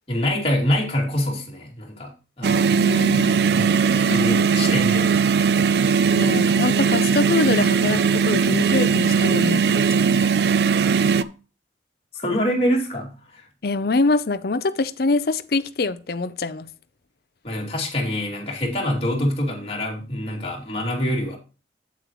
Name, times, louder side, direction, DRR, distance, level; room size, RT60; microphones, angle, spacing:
voice 1, 0.1-5.1 12.1-13.5 17.4-21.4, left 1 dB, 35° left, 2.7 m, -26 dB
sound 1, 2.4-11.2, right 6 dB, 65° right, 0.4 m, -19 dB
voice 2, 2.8-3.4 6.2-10.1 13.6-16.7, left 3 dB, 55° left, 0.6 m, -24 dB
8.4 x 8.0 x 3.0 m
head